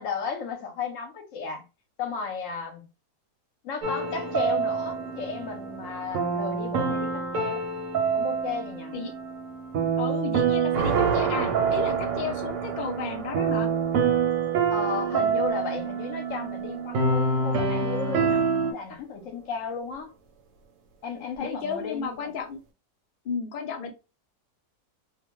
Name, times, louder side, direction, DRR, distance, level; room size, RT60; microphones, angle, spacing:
voice 1, 0.0-1.6 2.0-2.9 3.6-7.6 8.1-8.9 14.7-20.1 21.0-22.3, left 5 dB, 60° left, 0.9 m, -34 dB
sound 1, 3.8-18.7, right 5 dB, 70° right, 0.9 m, -27 dB
sound 2, 4.0-10.3 10.7-18.4, right 6 dB, 85° right, 1.2 m, -36 dB
voice 2, 10.0-13.7 21.4-22.6 23.2-23.9, left 5 dB, 85° left, 0.4 m, -33 dB
2.5 x 2.1 x 2.9 m
omnidirectional pair, 1.7 m